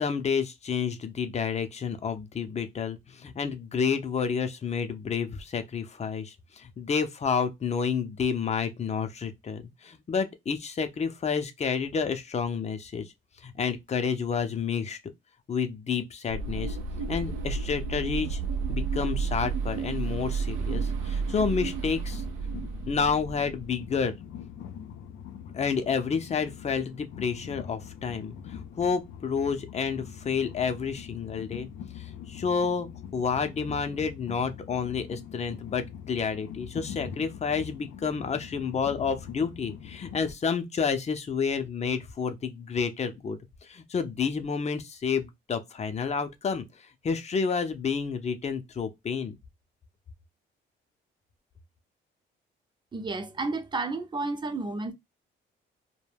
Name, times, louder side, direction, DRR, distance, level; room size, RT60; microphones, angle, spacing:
voice 1, 0.0-13.1 13.4-15.0 15.5-16.8 17.1-18.4 18.7-22.2 22.9-24.1 25.5-31.7 32.0-46.6 47.0-49.3, left 6 dB, 35° left, 0.6 m, -30 dB
sound 1, 16.3-23.7, right 5 dB, 90° right, 0.5 m, -31 dB
Train, 20.6-40.3, left 8 dB, 80° left, 0.5 m, -43 dB
voice 2, 52.9-54.9, right 3 dB, 25° right, 0.6 m, -31 dB
2.2 x 2.2 x 3.2 m
cardioid pair, 90°, 20 cm